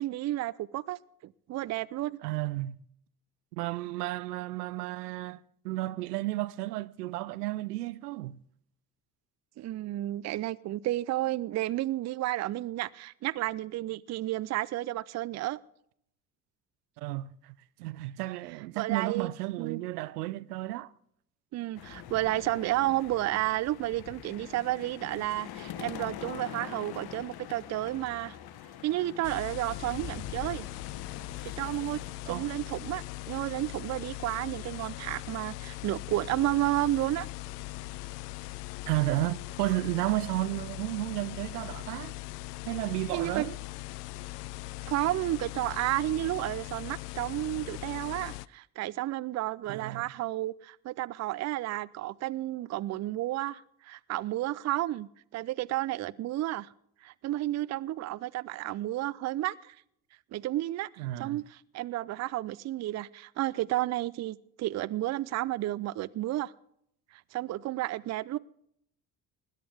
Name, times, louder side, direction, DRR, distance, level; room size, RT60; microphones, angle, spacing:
voice 1, 0.0-2.2 9.6-15.6 18.7-19.3 19.6-19.8 21.5-28.4 28.8-30.7 31.4-32.0 32.3-37.3 43.1-43.4 44.9-56.7 57.0-59.8 60.3-66.5 67.1-68.4, right 15 dB, 35° right, 0.5 m, -32 dB
voice 2, 2.2-2.8 3.5-5.4 5.6-8.4 17.0-20.9 32.3-32.5 38.9-42.1 42.7-43.5 49.7-50.1 61.0-61.4, right 17 dB, 75° right, 0.6 m, -33 dB
sound 1, 21.7-32.1, left 10 dB, 50° left, 1.2 m, -44 dB
sound 2, 29.2-48.5, left 19 dB, 75° left, 0.5 m, -40 dB
20.5 x 11.0 x 3.4 m
figure-of-eight pair, 50°, 48 cm